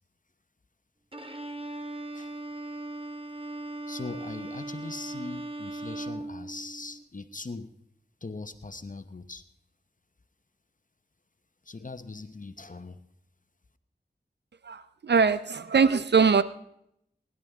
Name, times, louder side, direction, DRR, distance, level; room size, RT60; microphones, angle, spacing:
Bowed string instrument, 1.1-7.0, right 2 dB, 30° right, 1.6 m, -38 dB
voice 1, 3.9-7.7 8.2-9.4 11.6-13.0, left 3 dB, 50° left, 10 dB, 1.0 m, -40 dB
voice 2, 14.6-16.4, right 5 dB, 75° right, 14 dB, 0.6 m, -22 dB
22.5 x 11.0 x 3.6 m, 0.75 s
cardioid pair, 40°, 18 cm